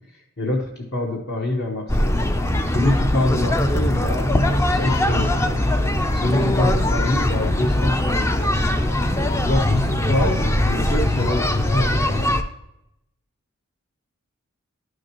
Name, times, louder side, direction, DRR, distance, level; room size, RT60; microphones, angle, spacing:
voice 1, 0.4-2.2 2.6-5.6 6.1-8.6 9.4-12.3, left 1 dB, 50° left, -1 dB, 1.0 m, -25 dB
sound 1, 1.9-12.4, left 1 dB, 15° left, 0.4 m, -21 dB
11.5 x 6.3 x 3.0 m, 0.84 s
head